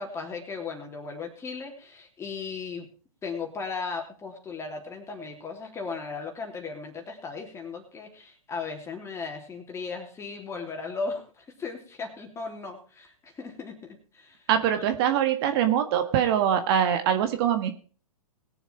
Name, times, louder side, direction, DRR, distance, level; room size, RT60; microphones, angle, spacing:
voice 1, 0.0-2.9 3.2-14.5 14.8-14.9, left 4 dB, 15° left, 2 dB, 3.5 m, -36 dB
voice 2, 14.5-17.7, right 9 dB, 40° right, 8 dB, 1.8 m, -23 dB
21.0 x 7.2 x 4.5 m, 0.38 s
hypercardioid pair, 125°, 19 cm